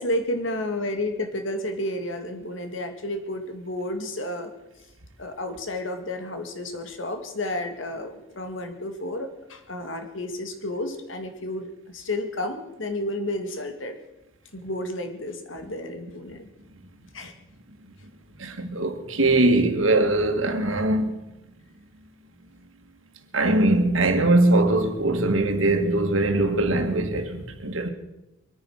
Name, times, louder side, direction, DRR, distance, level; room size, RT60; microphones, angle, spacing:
voice 1, 0.0-4.5 5.2-14.0 14.5-16.5 17.1-17.3, left 1 dB, 75° left, 2.3 m, -31 dB
voice 2, 18.4-21.1 23.3-27.9, right 2 dB, 85° right, 1.9 m, -21 dB
23.5 x 9.6 x 6.5 m
head